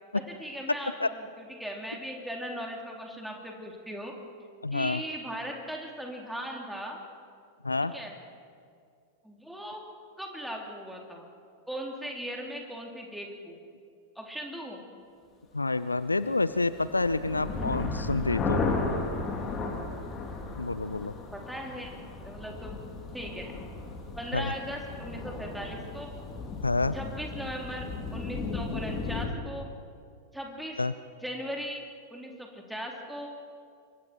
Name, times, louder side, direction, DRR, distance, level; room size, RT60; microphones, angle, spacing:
voice 1, 0.1-4.1 4.7-7.0 7.9-8.2 9.2-9.8 10.2-11.3 11.7-13.6 14.2-14.9 21.3-22.8 23.1-23.6 24.2-26.1 26.9-29.7 30.3-30.8 31.2-31.8 32.1-33.3, equal, ahead, 0 dB, 3.8 m, -38 dB
voice 2, 4.6-5.0 7.6-7.9 15.5-18.6 20.6-21.1 24.3-24.5 26.6-27.0 30.8-30.9, left 3 dB, 80° left, 15 dB, 0.6 m, -28 dB
sound 1, 16.5-29.3, left 3 dB, 25° left, 3.3 m, -35 dB
27.5 x 23.5 x 4.6 m, 2.3 s
figure-of-eight pair, 90°, 0 cm